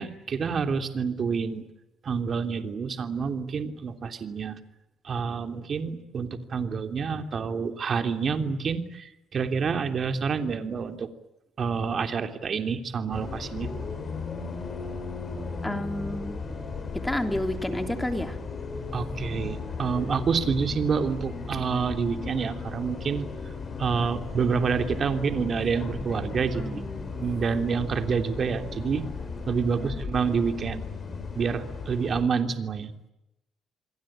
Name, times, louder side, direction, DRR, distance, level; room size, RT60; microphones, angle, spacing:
voice 1, 0.0-1.6 2.0-4.6 5.0-11.1 11.6-13.7 18.9-23.3 23.8-29.0 29.5-30.8 31.3-32.9, right 5 dB, 45° right, 7 dB, 3.1 m, -28 dB
Bus, 13.1-32.2, left 4 dB, 35° left, 6.2 m, -36 dB
voice 2, 15.6-16.4 16.9-18.4 26.5-27.1 29.7-30.0, left 1 dB, 10° left, 6 dB, 3.1 m, -31 dB
28.0 x 22.0 x 8.9 m, 0.90 s
cardioid pair, 110°, 0 cm